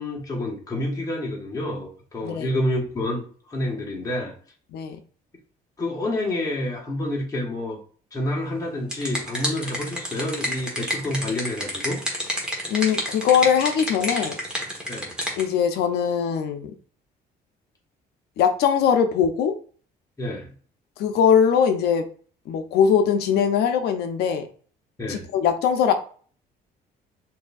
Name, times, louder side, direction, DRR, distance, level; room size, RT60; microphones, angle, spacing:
voice 1, 0.0-4.3 5.8-7.8 8.1-12.0 14.9-15.1 20.2-20.5 25.0-25.2, left 1 dB, 20° left, -2 dB, 1.3 m, -28 dB
sound 1, 8.6-15.4, equal, 5° right, 1.3 m, -30 dB
voice 2, 12.7-14.4 15.4-16.7 18.4-19.6 21.0-22.1 22.5-24.5 25.1-25.9, left 7 dB, 75° left, 6 dB, 0.6 m, -21 dB
6.3 x 2.7 x 2.4 m, 0.44 s
cardioid pair, 110°, 17 cm